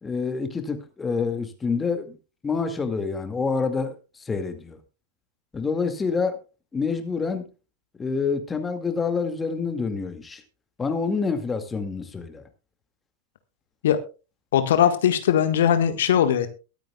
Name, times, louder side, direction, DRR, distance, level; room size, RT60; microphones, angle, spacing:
voice 1, 0.0-2.2 2.4-4.8 5.5-6.4 6.7-7.5 8.0-10.4 10.8-12.4, left 5 dB, 15° left, 7 dB, 2.1 m, -27 dB
voice 2, 14.5-16.5, left 9 dB, 60° left, 9 dB, 1.5 m, -20 dB
22.5 x 9.1 x 2.3 m, 0.31 s
figure-of-eight pair, 90°, 0 cm